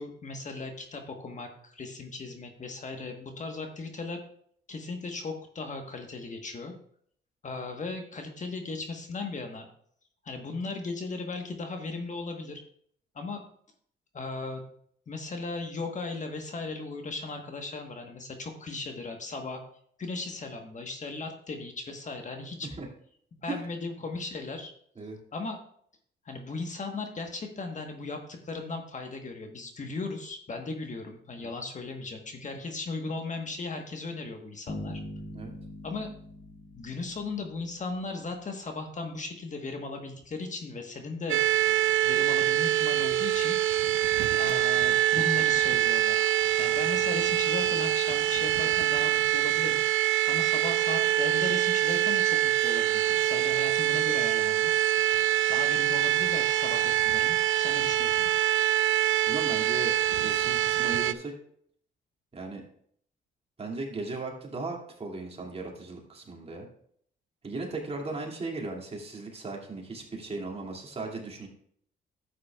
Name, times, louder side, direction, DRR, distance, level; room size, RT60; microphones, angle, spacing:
voice 1, 0.0-4.2 4.7-6.7 7.4-9.7 10.2-12.6 13.1-13.4 14.1-14.6 15.1-19.6 20.0-22.7 23.4-24.7 25.3-25.6 26.2-35.0 35.8-36.1 36.7-41.7 42.0-43.6 44.3-49.8 50.3-54.7 55.5-58.3, left 3 dB, 40° left, 4 dB, 1.3 m, -37 dB
sound 1, 34.7-38.1, left 1 dB, 65° left, 2.5 m, -42 dB
sound 2, 41.3-61.1, right 13 dB, 85° right, 0.4 m, -25 dB
voice 2, 59.2-61.3 62.3-62.6 63.6-66.7 67.4-71.5, right 3 dB, 30° right, 0 dB, 2.4 m, -37 dB
12.0 x 8.4 x 2.4 m, 0.63 s
cardioid pair, 90°, 20 cm